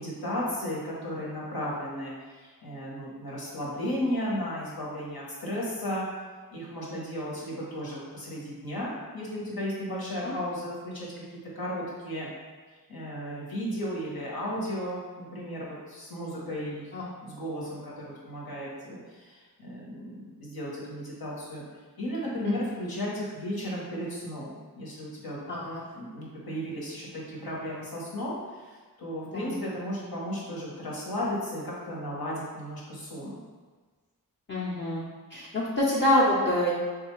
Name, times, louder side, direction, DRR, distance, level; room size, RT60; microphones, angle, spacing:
voice 1, 0.0-6.0 6.5-11.2 11.5-12.3 12.9-16.9 17.2-21.6 22.0-25.4 25.9-33.4, equal, 90° left, -6 dB, 1.0 m, -34 dB
voice 2, 25.5-25.8 29.3-29.5 34.5-35.0 35.3-36.7, left 1 dB, 35° left, -6 dB, 0.6 m, -26 dB
3.7 x 2.3 x 3.1 m, 1.4 s
wide cardioid pair, 50°, 35 cm